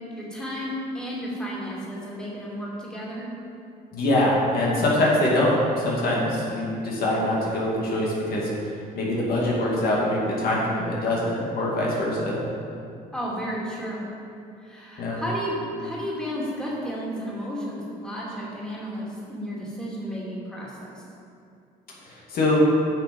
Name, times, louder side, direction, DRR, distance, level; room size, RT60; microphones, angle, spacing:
voice 1, 0.1-3.3 13.1-14.1 14.6-21.0, equal, 5° left, -6 dB, 2.6 m, -32 dB
voice 2, 3.9-8.5 8.9-12.4 15.0-15.2 22.0-22.6, left 1 dB, 60° left, -4 dB, 2.4 m, -24 dB
9.8 x 6.7 x 5.4 m, 2.5 s
cardioid pair, 110°, 17 cm